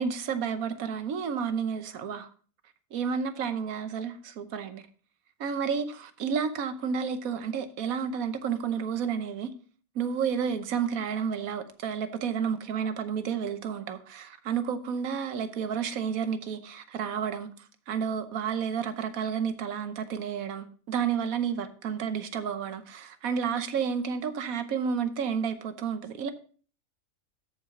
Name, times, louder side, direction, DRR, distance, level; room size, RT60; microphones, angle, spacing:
voice 1, 0.0-2.3 2.9-4.8 5.4-9.5 9.9-17.5 17.9-26.3, right 7 dB, 85° right, 1.3 m, -31 dB
13.5 x 4.7 x 3.7 m
omnidirectional pair, 1.4 m